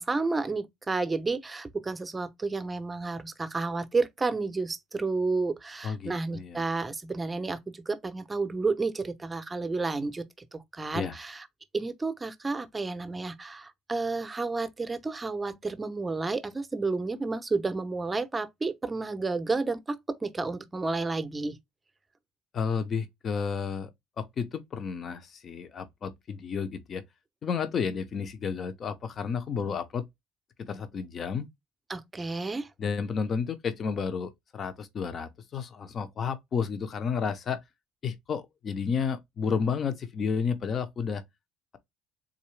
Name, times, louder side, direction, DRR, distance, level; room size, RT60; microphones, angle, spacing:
voice 1, 0.0-10.3 10.5-11.5 11.7-21.6 31.9-32.7, right 3 dB, 20° right, 0.6 m, -31 dB
voice 2, 5.8-6.6 10.9-11.1 22.5-23.9 24.2-27.0 27.4-30.0 30.6-31.5 32.8-37.6 38.0-41.2, left 6 dB, 40° left, 0.6 m, -31 dB
3.8 x 2.7 x 3.1 m
cardioid pair, 110°, 0 cm